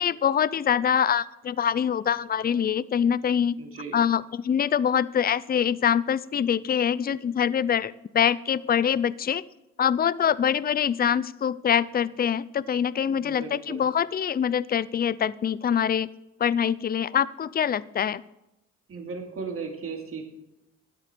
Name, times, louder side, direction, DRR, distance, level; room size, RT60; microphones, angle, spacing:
voice 1, 0.0-3.6 3.9-9.4 9.8-16.1 16.4-18.2, left 8 dB, 30° left, 19 dB, 0.5 m, -24 dB
voice 2, 3.6-4.0 13.2-13.8 18.9-20.2, right 4 dB, 45° right, 2 dB, 2.6 m, -36 dB
13.0 x 9.7 x 6.1 m, 0.91 s
cardioid pair, 90°, 30 cm